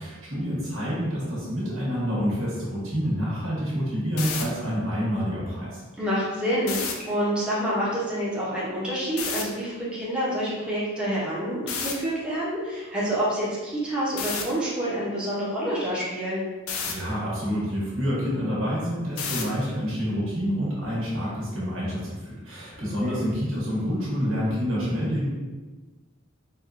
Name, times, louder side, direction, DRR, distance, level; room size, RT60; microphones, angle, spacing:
voice 1, 0.0-5.8 16.9-25.3, equal, 70° right, -7 dB, 1.3 m, -28 dB
sound 1, 4.1-4.4 6.6-6.9 9.2-9.4 11.7-11.9 14.2-14.4 16.7-16.9 19.2-19.6, left 6 dB, 80° left, 0.4 m, -30 dB
voice 2, 6.0-16.4 23.0-23.2, equal, 5° right, -9 dB, 0.6 m, -27 dB
4.2 x 2.2 x 2.5 m, 1.3 s
head